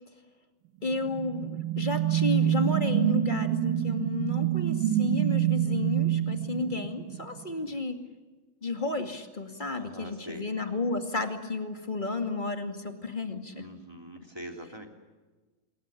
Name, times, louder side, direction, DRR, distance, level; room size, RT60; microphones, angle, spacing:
voice 1, 0.8-8.0 8.6-13.7, left 3 dB, 20° left, 6 dB, 1.7 m, -32 dB
sound 1, 0.9-7.4, right 12 dB, 90° right, 3.2 m, -27 dB
voice 2, 9.8-10.5 13.5-14.9, right 1 dB, 10° right, 3 dB, 2.7 m, -44 dB
27.0 x 22.5 x 8.4 m, 1.3 s
omnidirectional pair, 3.9 m